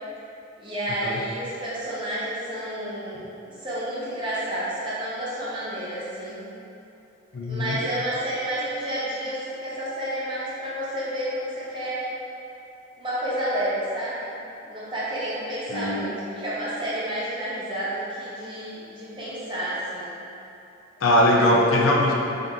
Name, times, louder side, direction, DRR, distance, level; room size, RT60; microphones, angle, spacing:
voice 1, 0.6-3.3 3.6-6.4 7.5-12.1 13.0-14.3 14.6-20.1 21.1-21.6, right 1 dB, 25° right, -9 dB, 0.8 m, -30 dB
voice 2, 7.3-7.8 15.7-16.1 21.0-22.1, left 1 dB, 85° left, -1 dB, 0.5 m, -20 dB
3.7 x 2.7 x 3.6 m, 2.8 s
head